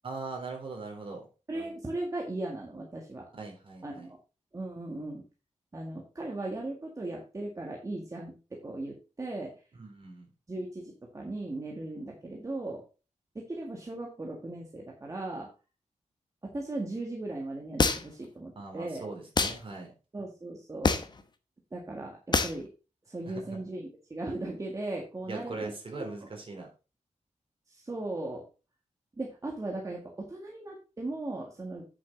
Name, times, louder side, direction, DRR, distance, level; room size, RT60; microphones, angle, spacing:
voice 1, 0.0-1.3 3.4-4.1 9.7-10.3 18.6-19.9 23.2-23.4 25.3-26.7, right 3 dB, 45° right, 2 dB, 3.7 m, -40 dB
voice 2, 1.5-3.2 3.8-4.2 4.5-5.2 5.7-9.6 10.5-12.8 13.4-15.5 16.4-19.0 20.1-21.0 21.7-22.7 23.1-25.7 26.0-26.3 27.7-28.4 29.2-31.8, right 2 dB, 25° right, -1 dB, 1.8 m, -37 dB
sound 1, 17.8-18.2 19.4-19.6 20.8-21.2 22.3-22.6, left 4 dB, 35° left, 0.9 m, -25 dB
9.3 x 7.2 x 3.9 m, 0.31 s
wide cardioid pair, 180°, 13 cm